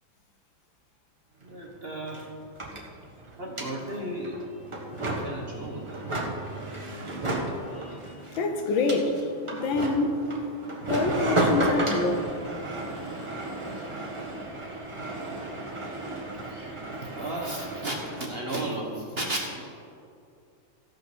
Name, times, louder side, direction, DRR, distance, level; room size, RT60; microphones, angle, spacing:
sound 1, 1.4-1.5 1.7-18.3, right 2 dB, 15° right, 1.2 m, -33 dB
voice 1, 1.4-2.3 3.4-4.4 5.1-5.9 16.5-16.8 17.1-19.6, right 1 dB, 35° right, -1 dB, 1.2 m, -34 dB
voice 2, 8.4-9.1 9.5-10.2 10.9-12.2, left 3 dB, 75° left, 5 dB, 1.7 m, -26 dB
15.0 x 5.8 x 6.2 m, 2.5 s
omnidirectional pair, 2.2 m